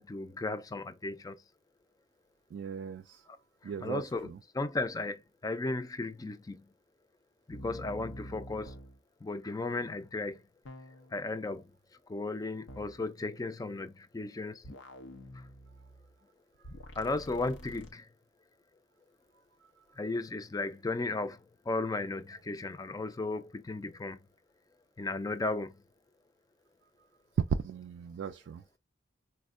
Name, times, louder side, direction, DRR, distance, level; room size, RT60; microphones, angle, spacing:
voice 1, 0.0-1.4 3.8-4.3 4.5-6.6 7.5-8.7 9.2-10.4 11.1-11.6 12.1-14.6 17.0-18.1 20.0-21.4 21.7-24.2 25.0-25.7, left 2 dB, 20° left, 0.4 m, -35 dB
voice 2, 2.5-3.2 3.6-4.4 27.6-28.8, right 7 dB, 75° right, 0.3 m, -41 dB
sound 1, 7.5-9.0 10.7-11.2 12.7-13.0 14.6-16.2 16.6-17.9, equal, 90° left, 0.6 m, -47 dB
4.2 x 2.1 x 2.4 m
head